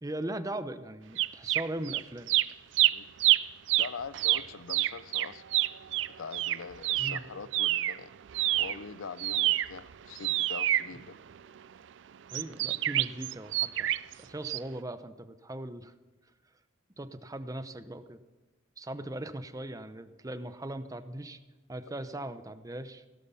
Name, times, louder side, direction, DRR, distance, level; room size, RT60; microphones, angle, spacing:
voice 1, 0.0-2.3 7.0-7.2 12.3-13.9 14.2-15.9 17.0-18.2 18.8-21.4 21.7-23.0, right 1 dB, 15° right, 11 dB, 0.7 m, -39 dB
sound 1, 1.2-2.0 2.3-8.0 8.3-11.6 12.3-14.1 14.4-14.6, right 15 dB, 65° right, 0.4 m, -27 dB
voice 2, 3.8-5.4 6.2-8.1 8.5-11.2 21.8-21.9, left 5 dB, 90° left, 16 dB, 0.6 m, -43 dB
17.0 x 12.5 x 5.6 m, 1.2 s
head